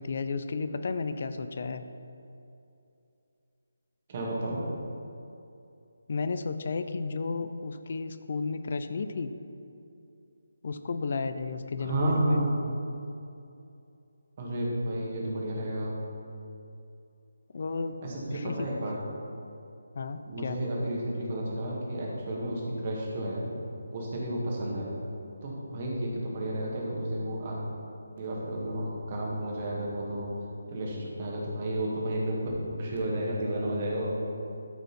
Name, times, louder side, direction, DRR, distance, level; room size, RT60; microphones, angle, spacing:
voice 1, 0.0-1.8 6.1-9.3 10.6-12.4 17.5-18.0 18.3-18.7 19.9-20.6, left 4 dB, 45° left, 10 dB, 0.5 m, -33 dB
voice 2, 4.1-4.6 11.7-12.5 14.4-16.0 18.0-18.9 20.3-23.5 23.9-24.9 25.4-27.6 28.2-30.3 30.7-32.5 32.8-34.2, right 1 dB, 30° right, -4 dB, 2.0 m, -31 dB
13.5 x 5.1 x 4.3 m, 2.7 s
figure-of-eight pair, 150°, 0 cm